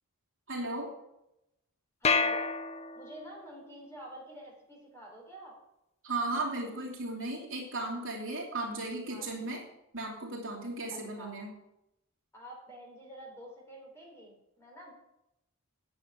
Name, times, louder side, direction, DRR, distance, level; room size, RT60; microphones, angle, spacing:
voice 1, 0.5-0.9 6.0-9.6 9.9-11.5, right 2 dB, 65° right, -2 dB, 3.1 m, -35 dB
sound 1, 2.0-3.4, left 4 dB, 30° left, 0.5 m, -29 dB
voice 2, 2.0-2.5 2.9-5.6 9.1-9.6 10.9-11.4 12.3-14.9, right 1 dB, 10° left, -2 dB, 3.9 m, -48 dB
10.5 x 7.4 x 8.2 m, 0.86 s
head